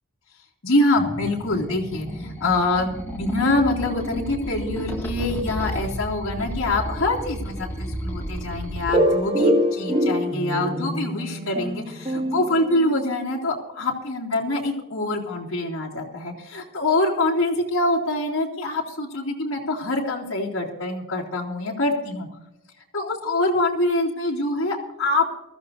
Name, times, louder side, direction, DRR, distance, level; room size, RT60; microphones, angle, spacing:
voice 1, 0.6-22.3 22.9-25.2, left 2 dB, 60° left, -4 dB, 2.7 m, -25 dB
sound 1, 1.0-8.9, equal, 10° left, 2.1 m, -32 dB
sound 2, 8.9-13.5, equal, 25° right, 2.0 m, -24 dB
23.0 x 14.0 x 2.7 m, 0.96 s
head